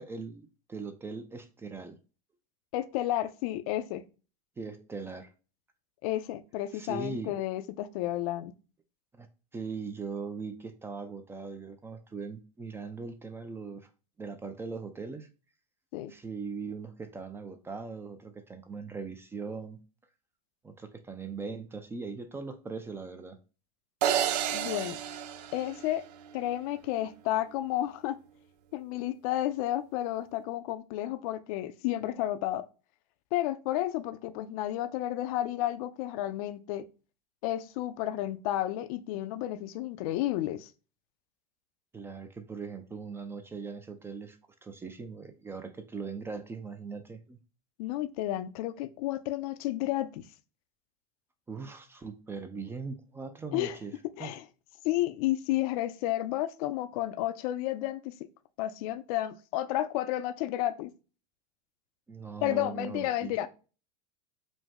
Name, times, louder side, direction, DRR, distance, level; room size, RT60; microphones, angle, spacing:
voice 1, 0.0-2.0 4.6-5.3 6.7-7.3 9.1-9.3 9.5-13.9 14.2-15.3 16.1-19.8 20.6-23.4 41.9-47.4 51.5-53.9 54.2-54.3 62.1-63.5, right 4 dB, 10° right, 0.4 m, -40 dB
voice 2, 2.7-4.1 6.0-8.5 15.9-16.1 24.5-25.0 25.5-26.0 26.3-28.2 28.7-32.6 33.3-36.9 37.4-40.7 47.8-50.2 53.5-53.8 54.2-54.4 54.8-58.1 58.6-60.9 62.4-63.5, left 14 dB, 65° left, 0.5 m, -31 dB
sound 1, 24.0-26.4, right 10 dB, 85° right, 0.5 m, -31 dB
5.1 x 2.0 x 3.6 m
supercardioid pair, 145°, 20 cm